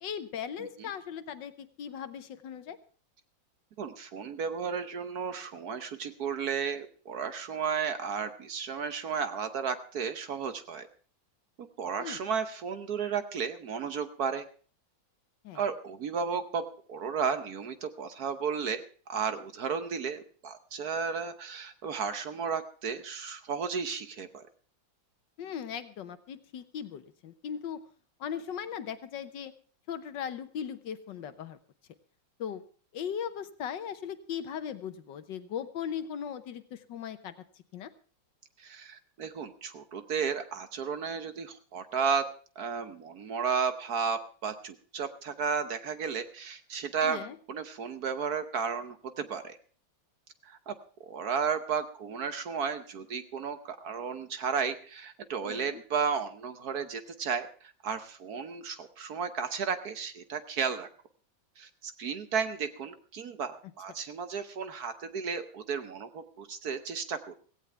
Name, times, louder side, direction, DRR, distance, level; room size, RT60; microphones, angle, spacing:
voice 1, 0.0-2.8 12.0-12.2 15.4-15.6 25.4-27.8 28.2-29.5 29.9-31.6 32.4-32.6 32.9-37.3 37.7-37.9 47.0-47.4 55.4-55.8, left 8 dB, 70° left, 11 dB, 1.5 m, -38 dB
voice 2, 3.8-10.9 11.8-14.4 15.5-18.8 19.1-24.4 38.6-42.2 42.6-47.2 47.5-49.6 50.4-50.7 51.0-60.9 61.6-67.4, right 6 dB, 55° right, 10 dB, 1.3 m, -33 dB
17.0 x 16.0 x 3.4 m, 0.42 s
omnidirectional pair, 2.1 m